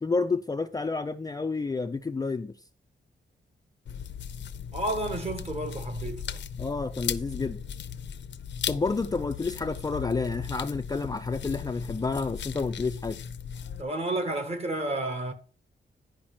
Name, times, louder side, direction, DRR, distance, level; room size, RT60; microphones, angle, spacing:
voice 1, 0.0-2.5 6.6-7.6 8.7-13.2, left 4 dB, 20° left, 0.4 m, -30 dB
sound 1, 3.9-13.8, left 8 dB, 65° left, 0.6 m, -37 dB
voice 2, 4.7-6.4 13.8-15.3, right 1 dB, 30° right, 1.5 m, -31 dB
10.5 x 5.2 x 5.8 m
wide cardioid pair, 155°, 20 cm